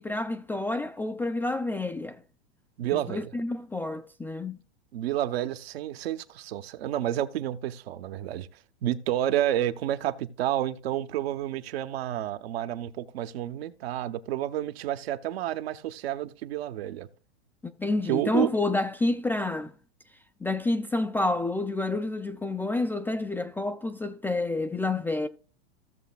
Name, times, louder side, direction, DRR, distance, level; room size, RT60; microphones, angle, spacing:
voice 1, 0.0-2.2 2.9-4.6 17.6-19.7 20.4-25.3, left 2 dB, 5° left, 0.3 m, -29 dB
voice 2, 2.8-3.3 4.9-8.5 8.8-17.1 18.1-18.5, right 12 dB, 70° right, 0.9 m, -30 dB
15.5 x 6.9 x 2.3 m
hypercardioid pair, 110°, 32 cm